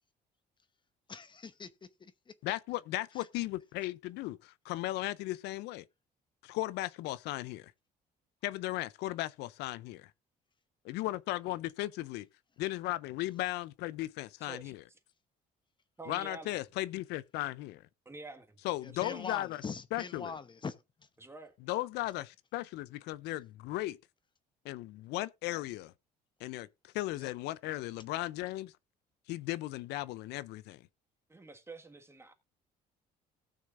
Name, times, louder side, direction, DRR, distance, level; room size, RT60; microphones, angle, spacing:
voice 1, 1.1-2.1 3.2-3.3 18.8-20.7 27.2-27.3, left 5 dB, 30° left, 0.9 m, -42 dB
voice 2, 2.4-5.8 6.4-7.7 8.4-10.1 10.8-12.3 12.6-14.8 16.1-17.8 18.6-19.6 19.9-20.4 21.7-24.0 24.6-25.9 26.4-28.7 29.3-30.8, left 17 dB, 85° left, 0.5 m, -36 dB
voice 3, 14.4-14.7 16.0-16.6 18.0-18.6 18.8-19.3 21.2-21.5 31.3-32.3, right 3 dB, 15° right, 1.7 m, -48 dB
18.0 x 6.4 x 2.5 m
cardioid pair, 110°, 17 cm